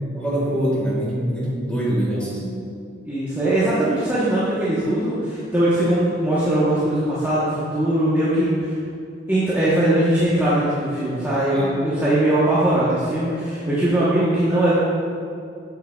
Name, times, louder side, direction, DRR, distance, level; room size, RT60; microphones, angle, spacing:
voice 1, 0.1-2.6 11.5-11.7, equal, 5° left, -7 dB, 1.6 m, -24 dB
voice 2, 3.1-8.8 9.3-14.7, right 1 dB, 10° right, -11 dB, 1.0 m, -20 dB
7.9 x 7.4 x 2.3 m, 2.4 s
head